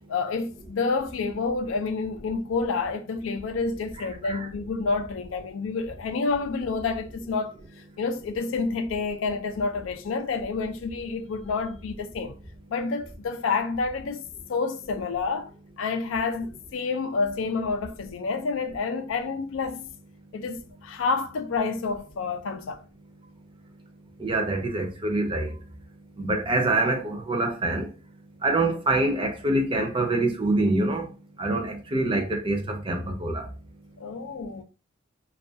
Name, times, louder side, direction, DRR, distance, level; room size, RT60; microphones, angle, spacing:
voice 1, 0.1-7.5 8.0-12.4 12.7-15.5 15.8-19.9 20.3-22.8 34.0-34.6, left 4 dB, 90° left, 0.4 m, -29 dB
voice 2, 24.2-25.6 26.2-27.9 28.4-31.1 31.4-33.5, right 2 dB, 25° right, 0.4 m, -25 dB
2.3 x 2.3 x 2.6 m
head